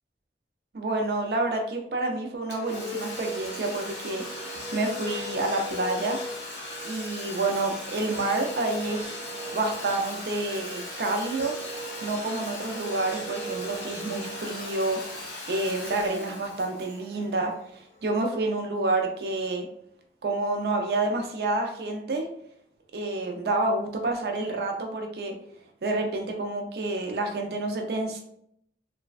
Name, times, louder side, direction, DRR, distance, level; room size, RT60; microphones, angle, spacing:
voice 1, 0.7-6.2 6.8-9.1 9.5-11.5 12.0-19.7 20.2-22.3 22.9-25.3 25.8-28.2, right 2 dB, 60° right, 2 dB, 0.4 m, -29 dB
Domestic sounds home sounds, 2.5-18.0, left 1 dB, 85° left, 1.2 m, -37 dB
3.2 x 2.1 x 2.3 m, 0.71 s
head